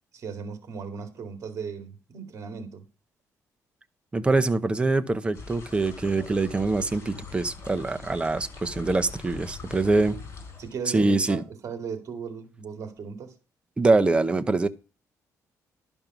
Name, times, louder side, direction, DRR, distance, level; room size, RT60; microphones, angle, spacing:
voice 1, 0.1-2.9 10.6-13.4, right 6 dB, 55° right, 2.3 m, -37 dB
voice 2, 4.1-10.2 10.9-11.4 13.8-14.7, right 3 dB, 15° right, 0.8 m, -24 dB
sound 1, 5.3-10.7, left 4 dB, 45° left, 4.7 m, -42 dB
12.0 x 5.4 x 6.0 m
cardioid pair, 130°, 6 cm